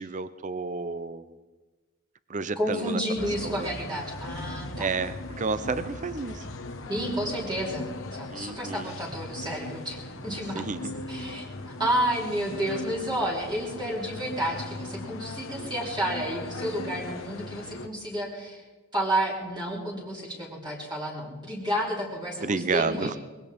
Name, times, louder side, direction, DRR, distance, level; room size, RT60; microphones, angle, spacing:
voice 1, 0.0-1.4 2.3-3.0 3.4-3.7 4.7-6.5 8.3-8.9 10.5-10.9 22.4-23.2, right 4 dB, 40° right, 13 dB, 0.6 m, -31 dB
voice 2, 2.5-4.9 6.9-7.8 8.1-10.7 11.1-18.6 18.9-23.2, right 1 dB, 25° right, -4 dB, 3.2 m, -31 dB
sound 1, 3.2-17.9, left 2 dB, 75° left, 1.5 m, -39 dB
21.5 x 17.0 x 3.6 m, 1.3 s
head